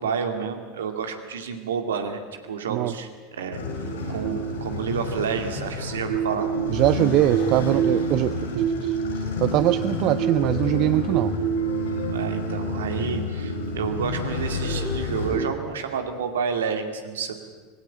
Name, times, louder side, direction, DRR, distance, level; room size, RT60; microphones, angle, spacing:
voice 1, 0.0-2.2 2.5-3.6 4.1-6.5 12.1-17.3, right 6 dB, 75° right, 6 dB, 2.3 m, -29 dB
sound 1, 3.5-15.5, right 2 dB, 75° left, 6.7 m, -27 dB
voice 2, 6.7-9.0 9.4-11.3, right 14 dB, 50° right, 13 dB, 0.7 m, -22 dB
20.0 x 17.0 x 8.9 m, 1.5 s
hypercardioid pair, 80°, 0 cm